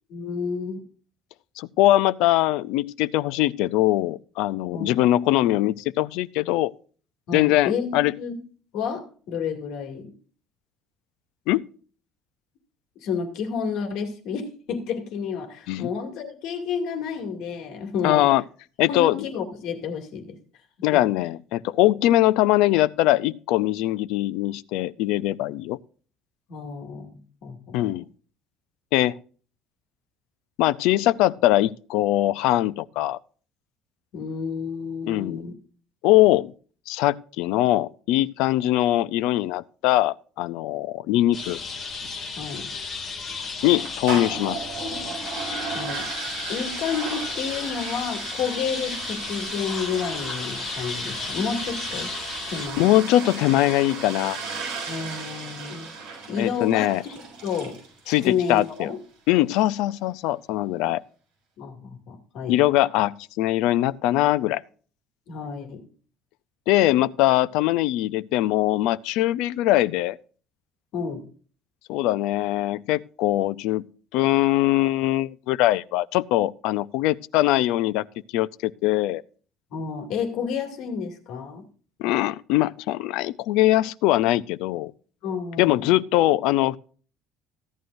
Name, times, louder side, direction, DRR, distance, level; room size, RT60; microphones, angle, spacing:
voice 1, 0.1-0.8 4.7-4.9 7.3-8.4 8.7-10.1 13.0-18.3 18.9-20.4 20.9-21.0 26.5-27.8 34.1-35.5 42.4-42.7 45.7-46.0 46.5-52.1 52.5-52.9 54.9-55.9 56.3-57.7 58.2-59.0 61.6-62.6 65.3-65.8 70.9-71.2 79.7-81.7 85.2-85.9, left 6 dB, 55° left, 2.4 m, -30 dB
voice 2, 1.6-6.7 7.3-8.1 11.5-11.6 15.7-15.9 18.0-18.4 18.8-19.2 20.8-25.8 27.7-28.0 28.9-29.2 30.6-33.2 35.0-35.4 36.0-36.5 36.9-41.6 43.6-44.6 52.8-54.4 56.4-57.0 58.1-58.9 59.3-61.0 62.5-64.6 66.7-70.2 71.9-73.8 74.1-78.1 78.3-79.2 82.0-84.9 85.6-86.8, left 15 dB, 70° left, 0.5 m, -22 dB
sound 1, 41.3-52.7, left 4 dB, 25° left, 2.3 m, -34 dB
sound 2, 43.6-58.8, right 4 dB, 60° right, 6.9 m, -36 dB
15.5 x 11.0 x 2.6 m
cardioid pair, 175°, 0 cm